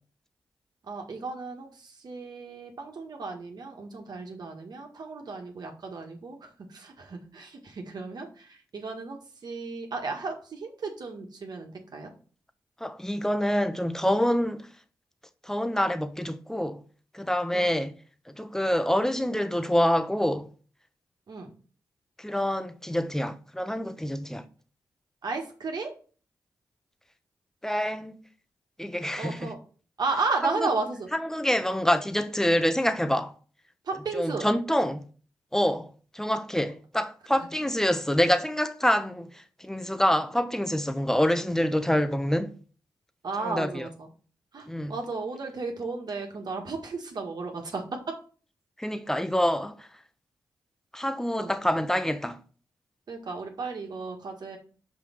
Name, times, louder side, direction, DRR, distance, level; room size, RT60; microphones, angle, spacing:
voice 1, 0.8-12.1 17.5-17.7 21.3-21.5 25.2-25.9 29.2-29.6 30.0-31.1 33.9-34.5 43.2-44.1 44.5-48.0 51.4-51.5 53.1-54.6, right 4 dB, 65° right, 1.7 m, -34 dB
voice 2, 12.8-14.7 15.4-16.8 17.1-17.9 18.3-20.5 22.2-24.4 27.6-28.2 28.8-29.5 30.4-30.7 31.1-33.3 34.1-35.1 35.5-42.5 43.4-43.9 44.7-45.0 48.8-49.9 50.9-52.4, equal, 5° left, 1.1 m, -26 dB
5.4 x 5.2 x 5.9 m
supercardioid pair, 40°, 7 cm